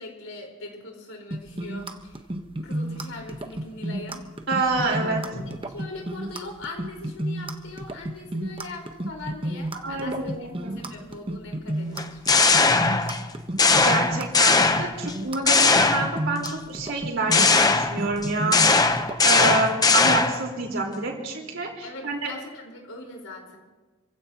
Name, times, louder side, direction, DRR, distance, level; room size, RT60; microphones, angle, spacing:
voice 1, 0.0-2.2 2.6-4.2 4.9-5.0 5.3-10.3 10.8-12.2 21.8-23.6, left 2 dB, 80° left, 0 dB, 4.6 m, -41 dB
sound 1, 1.3-19.2, right 1 dB, 25° right, 1.1 m, -31 dB
voice 2, 4.5-5.4 9.8-10.9 13.7-18.7 19.2-22.3, right 3 dB, 60° right, 0 dB, 4.4 m, -28 dB
sound 2, 12.0-13.3 13.6-15.1 15.5-16.5 17.3-20.5, left 4 dB, 20° left, 0.8 m, -19 dB
29.5 x 16.5 x 3.0 m, 1.3 s
head